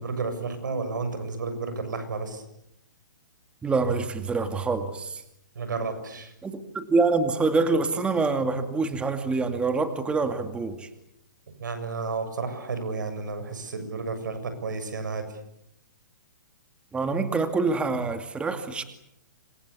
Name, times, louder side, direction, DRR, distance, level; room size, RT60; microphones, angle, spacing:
voice 1, 0.0-2.4 5.6-6.3 11.6-15.4, right 4 dB, 80° right, 9 dB, 7.2 m, -32 dB
voice 2, 3.6-5.2 6.4-10.9 16.9-18.8, right 3 dB, 10° right, 8 dB, 2.3 m, -26 dB
27.5 x 25.5 x 8.4 m, 0.81 s
hypercardioid pair, 135°, 10 cm